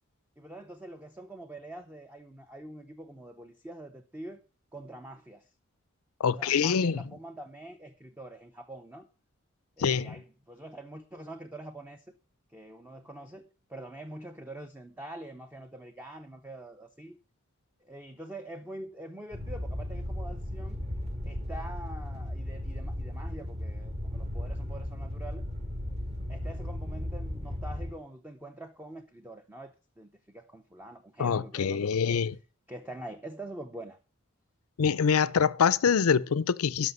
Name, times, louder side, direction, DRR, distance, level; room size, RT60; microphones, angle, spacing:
voice 1, 0.4-4.4 4.7-5.5 6.3-9.1 9.8-12.1 12.5-17.2 17.8-20.8 21.2-25.5 26.3-32.2 32.7-34.0, right 1 dB, 10° right, 0.5 m, -45 dB
voice 2, 6.2-7.0 9.8-10.2 31.2-32.4 34.8-36.9, left 6 dB, 85° left, 0.5 m, -25 dB
sound 1, 19.3-27.9, left 1 dB, 30° right, 1.3 m, -36 dB
12.5 x 5.7 x 5.3 m
head